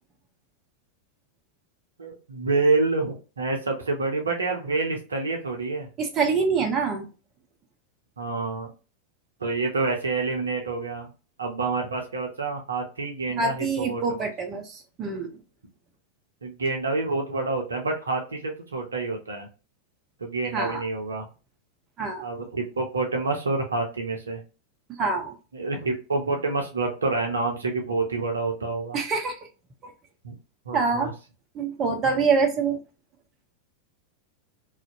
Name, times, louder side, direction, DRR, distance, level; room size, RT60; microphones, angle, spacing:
voice 1, 2.0-5.9 8.2-8.7 9.4-11.1 11.4-14.3 16.4-19.5 20.2-21.3 22.2-24.4 25.5-29.0 30.2-30.3 30.7-31.1, right 3 dB, 70° right, 3 dB, 0.6 m, -27 dB
voice 2, 6.0-7.1 13.3-15.3 20.5-20.8 22.0-22.3 25.0-25.3 28.9-29.4 29.8-29.9 30.7-31.1 31.5-32.8, right 4 dB, 30° right, 3 dB, 0.6 m, -25 dB
2.5 x 2.1 x 2.5 m, 0.32 s
figure-of-eight pair, 90°, 0 cm